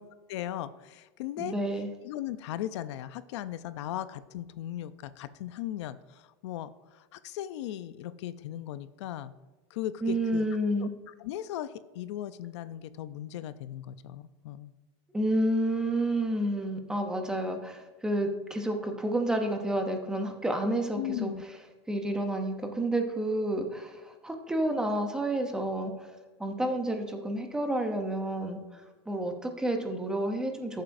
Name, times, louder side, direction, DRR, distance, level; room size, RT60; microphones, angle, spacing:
voice 1, 0.3-1.5 2.0-9.3 9.7-10.5 11.2-14.7 21.0-21.4, left 12 dB, 80° left, 14 dB, 0.5 m, -37 dB
voice 2, 1.4-1.9 10.0-10.9 15.1-21.3 21.9-26.1 26.4-30.8, right 1 dB, 5° right, 4 dB, 0.6 m, -30 dB
14.0 x 7.4 x 2.6 m, 1.3 s
supercardioid pair, 180°, 15 cm